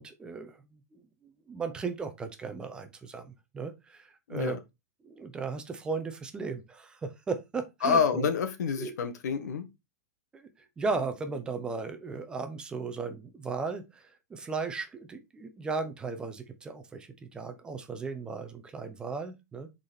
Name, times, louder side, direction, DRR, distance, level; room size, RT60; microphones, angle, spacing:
voice 1, 0.0-4.6 5.0-8.3 8.8-8.9 10.3-19.7, right 4 dB, 10° right, 0.6 m, -36 dB
voice 2, 4.3-4.6 7.8-9.7, left 6 dB, 85° left, 1.3 m, -28 dB
6.1 x 4.1 x 4.2 m
supercardioid pair, 165°, 9 cm